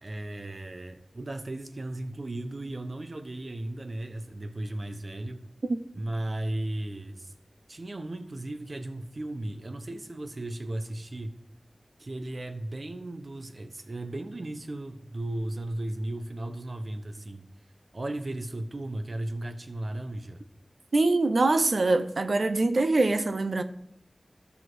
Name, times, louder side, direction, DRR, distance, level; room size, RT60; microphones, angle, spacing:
voice 1, 0.0-5.4 6.0-7.3 7.7-11.3 12.0-17.5 17.9-20.4, right 1 dB, 55° right, 1.2 m, -35 dB
voice 2, 20.9-23.6, right 2 dB, 75° right, 0.8 m, -24 dB
13.5 x 5.9 x 6.3 m
wide cardioid pair, 70°, 0 cm